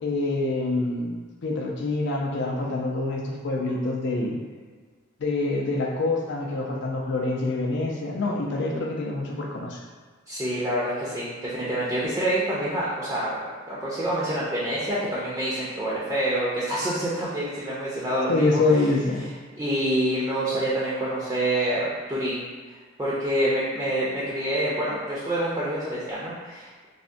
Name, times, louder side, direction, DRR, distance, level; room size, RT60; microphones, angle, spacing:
voice 1, 0.0-4.4 5.2-9.8 18.3-19.2, left 2 dB, 60° left, 0 dB, 0.5 m, -26 dB
voice 2, 10.3-18.6 19.5-22.4 23.0-26.9, right 1 dB, 15° right, -8 dB, 0.5 m, -27 dB
3.4 x 2.1 x 2.5 m, 1.5 s
head